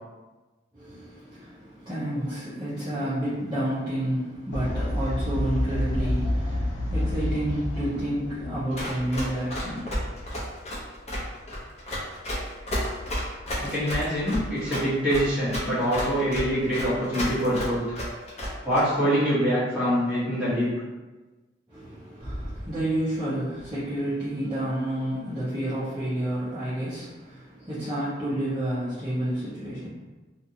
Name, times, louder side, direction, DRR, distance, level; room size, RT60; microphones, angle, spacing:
voice 1, 0.7-10.2 21.7-29.9, right 1 dB, 20° right, -13 dB, 0.7 m, -30 dB
Fowl, 4.5-9.8, left 1 dB, 85° left, 0.6 m, -29 dB
Run, 8.8-18.8, equal, 35° left, 0.7 m, -31 dB
voice 2, 13.6-17.8 18.6-20.7, equal, 5° right, -13 dB, 1.2 m, -24 dB
2.6 x 2.4 x 2.7 m, 1.2 s
head